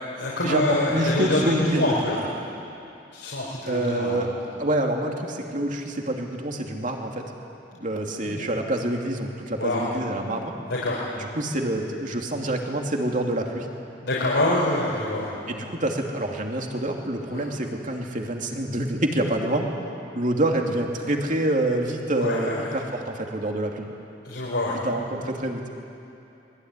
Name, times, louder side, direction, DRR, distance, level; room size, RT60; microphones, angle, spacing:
voice 1, 0.2-2.2 3.1-4.3 8.2-8.5 9.6-9.9 10.7-11.0 14.0-15.3 17.3-17.5 22.2-22.6 24.2-24.8, left 1 dB, 85° left, -6 dB, 5.4 m, -25 dB
voice 2, 0.9-1.9 3.7-4.3 4.6-7.2 7.7-10.5 11.2-13.7 15.5-19.7 20.1-23.9 24.8-25.6, right 1 dB, 45° right, 1 dB, 2.8 m, -27 dB
25.5 x 21.5 x 9.9 m, 2.8 s
head